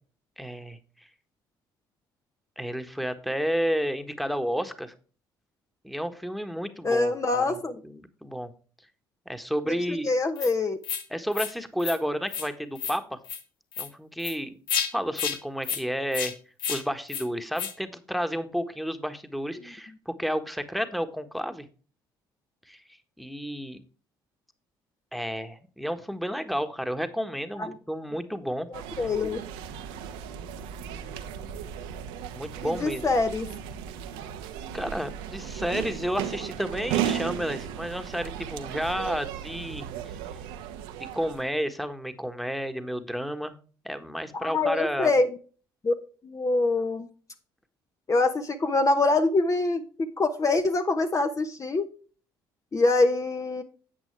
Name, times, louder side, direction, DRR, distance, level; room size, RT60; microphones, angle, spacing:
voice 1, 0.4-0.8 2.6-4.9 5.8-7.6 7.8-8.5 9.3-10.1 11.1-13.2 13.8-14.5 14.9-16.3 16.7-21.7 22.7-22.8 23.2-23.8 25.1-28.7 32.3-33.0 34.7-39.8 41.1-43.5 43.8-45.1, equal, ahead, 8 dB, 1.5 m, -31 dB
voice 2, 6.8-7.8 9.7-10.8 27.6-27.7 28.7-29.4 32.6-33.5 44.3-45.3 45.8-45.9 46.2-47.1 48.1-51.9 52.7-53.6, left 3 dB, 30° left, 7 dB, 1.0 m, -25 dB
sound 1, 10.4-10.5 10.8-11.0 11.3-11.5 11.8-12.0 12.3-12.5 12.8-13.0 13.2-13.4 13.7-13.9 14.2-14.3 14.7-14.9 15.2-15.4 15.6-15.8 16.1-16.3 16.6-16.8 17.1-17.2 17.6-17.7, left 8 dB, 90° left, 1.3 m, -30 dB
sound 2, 28.7-41.5, right 9 dB, 75° right, 1.0 m, -35 dB
10.0 x 8.2 x 3.3 m, 0.38 s
hypercardioid pair, 60°, 11 cm